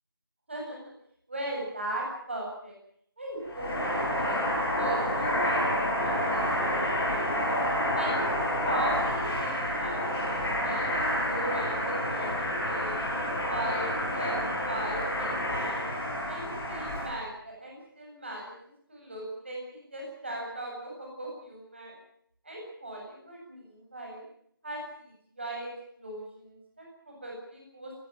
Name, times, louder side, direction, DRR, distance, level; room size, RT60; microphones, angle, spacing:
voice 1, 0.5-0.8 1.3-2.7 3.2-4.4 4.8-5.7 6.0-7.6 7.9-8.4 8.6-13.0 13.5-15.8 16.3-18.5 18.9-21.9 22.4-24.2 24.6-24.8 25.4-25.7 26.0-28.0, right 1 dB, 30° right, -1 dB, 7.8 m, -38 dB
sound 1, 3.4-17.1, equal, 5° left, 3.2 m, -29 dB
20.5 x 19.0 x 8.9 m, 0.69 s
figure-of-eight pair, 175°, 12 cm